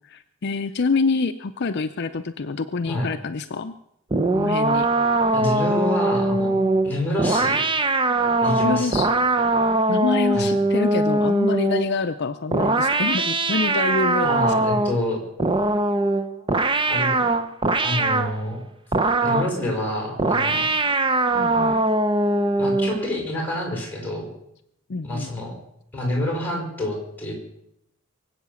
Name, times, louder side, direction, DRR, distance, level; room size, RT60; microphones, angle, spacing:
voice 1, 0.0-3.7 4.3-4.9 8.6-9.1 9.4-9.5 9.9-14.7 21.3-21.8 24.9-25.3, left 4 dB, 55° left, 9 dB, 0.6 m, -26 dB
sound 1, 4.1-11.9 12.5-15.0 15.4-18.4 18.9-19.6 20.2-23.0, right 2 dB, 25° right, 0.7 m, -21 dB
voice 2, 5.3-6.6 6.8-7.6 8.4-9.1 10.3-10.5 14.2-15.2 16.9-17.2 17.8-18.6 19.2-20.7 22.6-24.3 25.0-25.5 25.9-27.3, left 1 dB, 10° left, 0 dB, 5.6 m, -27 dB
23.0 x 8.3 x 7.1 m, 0.78 s
head